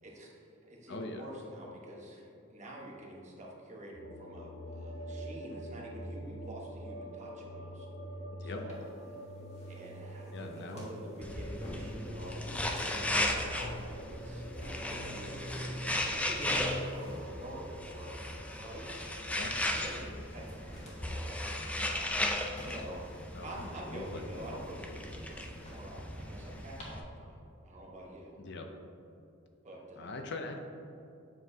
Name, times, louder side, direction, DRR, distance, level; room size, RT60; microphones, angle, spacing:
voice 1, 0.0-7.9 8.4-8.8 9.1-9.2 9.6-18.2 18.5-22.3 22.6-27.4 27.6-28.4 29.6-30.1, right 1 dB, 35° right, -2 dB, 1.1 m, -47 dB
voice 2, 0.9-1.3 8.3-8.6 10.3-10.9 19.3-19.6 23.3-24.2 28.4-28.7 30.0-30.6, left 2 dB, 55° left, 4 dB, 0.6 m, -42 dB
sound 1, 3.9-20.0, equal, 80° left, 1.2 m, -45 dB
sound 2, 8.7-26.8, left 1 dB, 30° left, 1.4 m, -55 dB
sound 3, 11.2-27.0, left 1 dB, 5° left, 0.4 m, -36 dB
7.6 x 5.9 x 2.7 m, 2.7 s
head